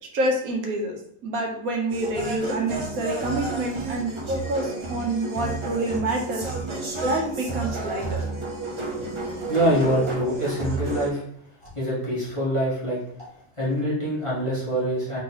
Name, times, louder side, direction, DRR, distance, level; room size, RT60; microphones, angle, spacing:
voice 1, 0.1-6.5 7.0-8.2, right 1 dB, 80° right, 1 dB, 1.3 m, -27 dB
sound 1, 1.9-11.1, right 3 dB, 35° right, 0.4 m, -31 dB
voice 2, 9.5-11.2 11.6-13.3 13.6-15.2, equal, 20° left, -9 dB, 1.5 m, -25 dB
3.9 x 3.5 x 2.9 m, 0.72 s
omnidirectional pair, 1.5 m